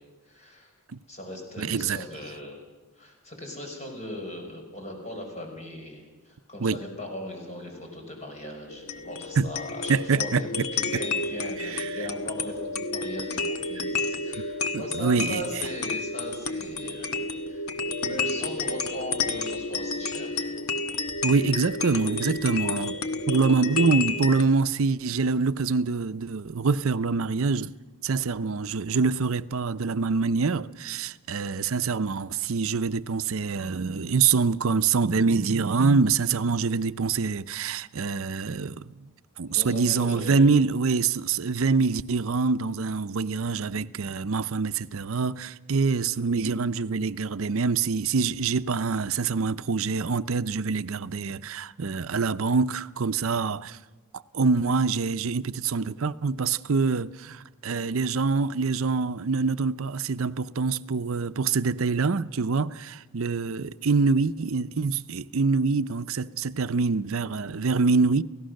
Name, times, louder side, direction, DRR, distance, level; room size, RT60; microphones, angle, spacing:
voice 1, 0.3-0.7 1.1-2.6 3.0-17.2 17.5-17.7 18.0-20.7 39.5-40.5, left 1 dB, 30° left, 5.4 m, -39 dB
voice 2, 1.6-2.0 6.6-6.8 9.4-9.5 9.9-10.7 11.6-12.1 14.4-14.5 14.7-15.7 21.2-23.0 23.3-27.7 28.0-39.1 39.4-53.8 54.1-68.2, right 4 dB, 65° right, 0.6 m, -25 dB
sound 1, 8.7-24.4, left 3 dB, 80° left, 1.4 m, -31 dB
29.0 x 16.0 x 6.5 m
head